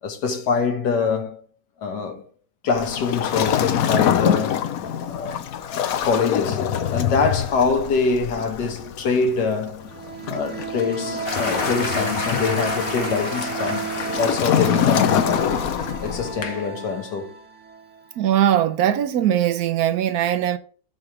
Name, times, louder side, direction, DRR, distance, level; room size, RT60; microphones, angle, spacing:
voice 1, 0.0-1.4 1.8-2.3 2.6-4.7 5.1-5.4 6.0-9.9 10.3-13.9 14.2-15.6 16.0-17.4, left 5 dB, 90° left, 1.8 m, -24 dB
Waves surf, 2.8-16.4, left 9 dB, 65° left, 1.1 m, -25 dB
sound 1, 9.8-18.4, right 6 dB, 50° right, 1.2 m, -33 dB
sound 2, 11.3-15.9, left 3 dB, 35° left, 1.4 m, -31 dB
voice 2, 18.2-20.6, right 11 dB, 70° right, 1.1 m, -20 dB
7.8 x 3.4 x 5.8 m
omnidirectional pair, 1.8 m